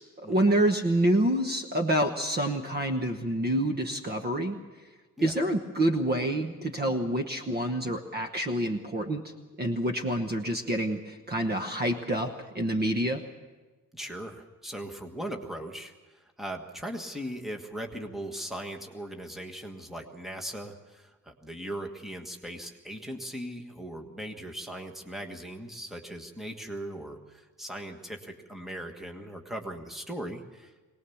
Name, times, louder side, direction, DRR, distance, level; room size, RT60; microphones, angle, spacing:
voice 1, 0.0-4.6 5.2-9.2 9.6-13.2, right 1 dB, 30° right, 6 dB, 1.1 m, -27 dB
voice 2, 13.9-30.7, right 1 dB, ahead, 3 dB, 1.5 m, -39 dB
23.0 x 19.0 x 7.1 m, 1.3 s
wide cardioid pair, 175°, 34 cm